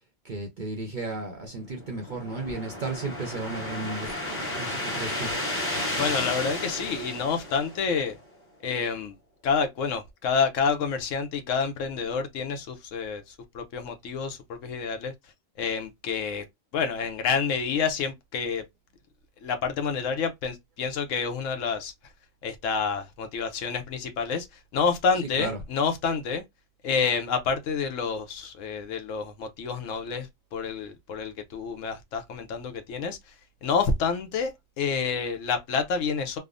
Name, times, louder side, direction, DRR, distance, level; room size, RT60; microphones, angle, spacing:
voice 1, 0.2-4.1 4.6-5.3 25.1-25.6, right 3 dB, 50° right, 0.6 m, -34 dB
sound 1, 1.6-8.1, left 1 dB, 10° left, 0.8 m, -33 dB
voice 2, 6.0-8.2 8.6-9.2 9.4-15.1 15.6-16.4 16.7-18.6 19.4-21.9 22.4-26.4 26.8-33.3 33.6-34.5 34.8-36.4, left 5 dB, 70° left, 0.9 m, -28 dB
3.3 x 2.0 x 2.4 m
omnidirectional pair, 1.4 m